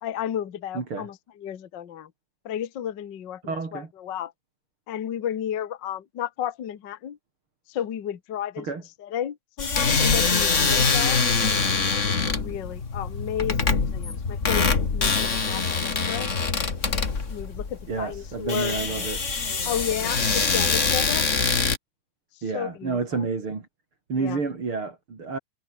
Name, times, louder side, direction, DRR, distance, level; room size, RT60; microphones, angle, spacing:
voice 1, 0.0-2.1 2.4-4.3 4.9-7.2 7.7-8.7 9.0-11.2 12.4-16.3 17.3-19.1 19.6-21.3 22.5-23.3 24.1-24.4, left 10 dB, 70° left, 1.0 m, -33 dB
voice 2, 0.7-1.1 3.4-3.9 8.6-8.8 17.9-19.2 22.4-23.7 24.1-25.4, right 4 dB, 35° right, 4.2 m, -29 dB
sound 1, 9.6-21.8, left 4 dB, 35° left, 1.2 m, -24 dB
omnidirectional pair, 4.6 m